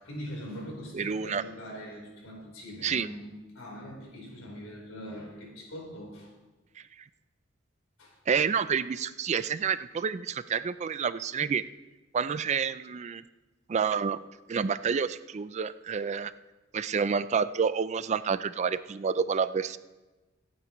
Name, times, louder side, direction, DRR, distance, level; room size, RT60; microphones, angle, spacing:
voice 1, 0.0-6.3 8.0-8.2, equal, 85° left, -1 dB, 4.1 m, -42 dB
voice 2, 0.9-1.4 2.8-3.1 6.8-6.9 8.3-11.6 12.1-13.2 13.7-14.2 14.5-16.3 16.7-19.8, right 6 dB, 35° right, 14 dB, 0.3 m, -29 dB
25.5 x 9.1 x 3.1 m, 1.2 s
head